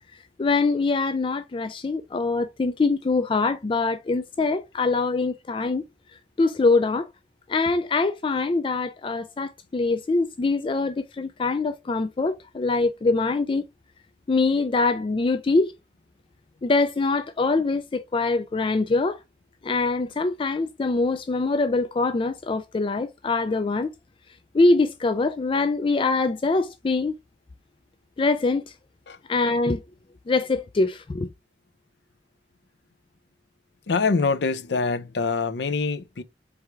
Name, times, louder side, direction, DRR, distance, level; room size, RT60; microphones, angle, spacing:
voice 1, 0.4-5.8 6.4-7.1 7.5-13.6 14.3-15.7 16.6-19.2 19.6-23.9 24.5-27.1 28.2-28.6 29.3-29.8 30.3-31.3, left 3 dB, 30° left, 0.3 m, -23 dB
voice 2, 33.9-36.2, left 4 dB, 70° left, 0.6 m, -24 dB
4.7 x 3.4 x 3.4 m
head